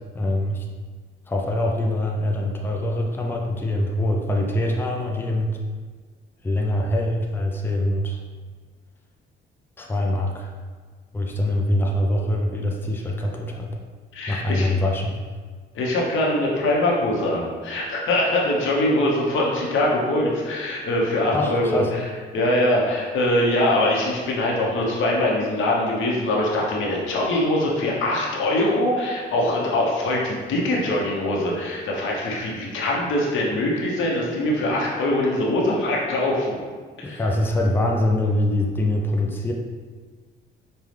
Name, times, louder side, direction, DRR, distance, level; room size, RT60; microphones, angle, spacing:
voice 1, 0.1-0.7 1.3-5.6 6.4-8.2 9.8-10.5 11.1-13.7 14.3-15.2 21.3-21.9 37.0-39.5, left 1 dB, 10° left, 0 dB, 0.5 m, -24 dB
voice 2, 14.1-14.7 15.7-21.8 22.3-36.6 37.0-37.2, left 1 dB, 80° left, -3 dB, 0.9 m, -23 dB
5.4 x 2.3 x 3.2 m, 1.5 s
cardioid pair, 90°, 20 cm